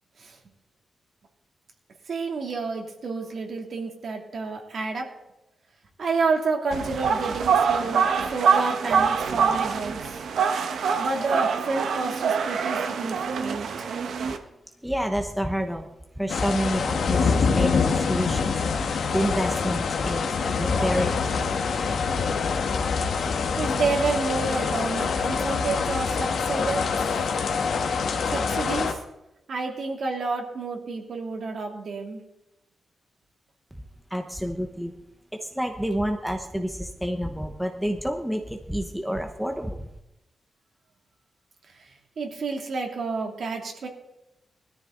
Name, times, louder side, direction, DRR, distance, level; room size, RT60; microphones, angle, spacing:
voice 1, 2.1-5.1 6.0-10.1 11.0-13.7 23.6-26.8 28.3-29.0 29.5-32.2 41.7-41.9 42.2-43.9, right 4 dB, 50° right, 2 dB, 2.9 m, -29 dB
sound 1, 6.7-14.4, right 6 dB, 75° right, 1.4 m, -25 dB
voice 2, 14.8-15.9 16.2-18.6 19.1-21.3 34.1-34.9 35.3-39.9, equal, ahead, 4 dB, 1.0 m, -29 dB
sound 2, 16.3-28.9, left 5 dB, 65° left, 1.7 m, -25 dB
20.5 x 13.5 x 4.0 m, 0.91 s
wide cardioid pair, 170°, 0 cm